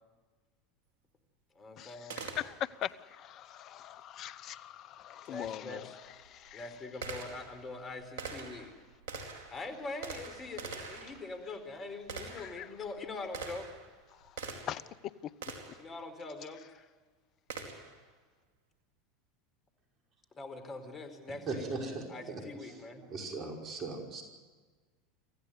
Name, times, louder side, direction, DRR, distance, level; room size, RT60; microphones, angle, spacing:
voice 1, 1.5-2.2 5.3-5.9 6.5-8.7 9.5-13.7 15.8-16.9 20.3-21.6 22.1-23.0, left 3 dB, 30° left, 4.4 m, -43 dB
Gunshot gunfire, 2.1-2.9 5.2-5.3 6.1-14.9 15.4-15.9 17.5-18.0, right 4 dB, 70° right, 4.4 m, -45 dB
voice 2, 2.4-5.9 6.3-6.6 12.3-12.7 14.7-14.8, left 11 dB, 45° left, 0.9 m, -40 dB
voice 3, 21.5-22.4 23.0-24.2, right 3 dB, 40° right, 5.5 m, -38 dB
26.0 x 16.0 x 9.5 m
hypercardioid pair, 85°, 0 cm